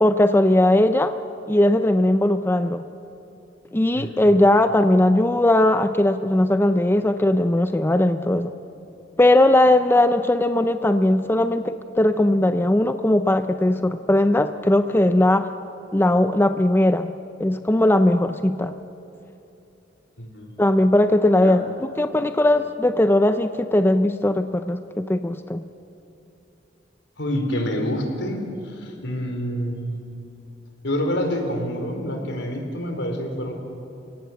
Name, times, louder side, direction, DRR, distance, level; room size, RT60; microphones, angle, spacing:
voice 1, 0.0-1.1 1.5-2.8 3.7-8.5 9.2-15.5 15.9-17.1 17.4-18.7 20.6-25.7, left 1 dB, 10° left, 9 dB, 0.6 m, -19 dB
voice 2, 3.9-4.3 20.2-20.5 21.4-21.6 27.2-30.0 30.8-33.5, equal, 70° left, 4 dB, 4.0 m, -27 dB
29.5 x 17.5 x 7.8 m, 2.9 s
head